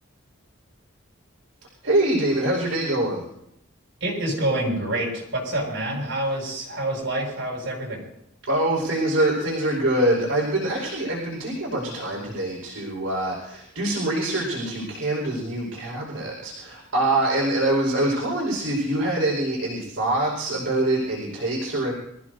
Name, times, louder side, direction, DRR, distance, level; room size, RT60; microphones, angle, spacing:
voice 1, 1.8-3.3 8.5-21.9, right 1 dB, 75° right, -5 dB, 5.0 m, -24 dB
voice 2, 4.0-8.0, right 1 dB, 60° right, -2 dB, 7.4 m, -27 dB
26.0 x 15.0 x 2.7 m, 0.77 s
head